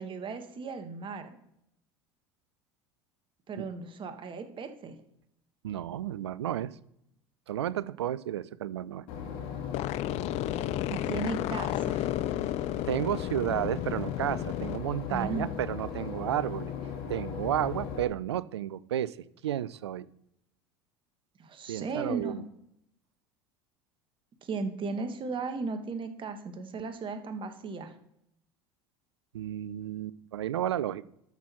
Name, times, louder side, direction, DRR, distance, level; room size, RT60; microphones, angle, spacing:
voice 1, 0.0-1.4 3.5-5.0 10.9-12.1 15.1-15.5 21.4-22.4 24.4-27.9, right 4 dB, 35° right, 7 dB, 1.6 m, -36 dB
voice 2, 5.6-6.7 7.5-9.1 12.9-16.7 17.1-19.2 19.4-20.1 21.7-22.4 29.3-31.1, right 11 dB, 85° right, 19 dB, 0.4 m, -32 dB
Boat Water vehicle / Engine, 9.1-18.0, left 7 dB, 65° left, 2.0 m, -37 dB
sound 1, 9.7-14.8, left 15 dB, 50° left, 0.4 m, -33 dB
12.5 x 6.0 x 4.4 m, 0.78 s
hypercardioid pair, 75°, 14 cm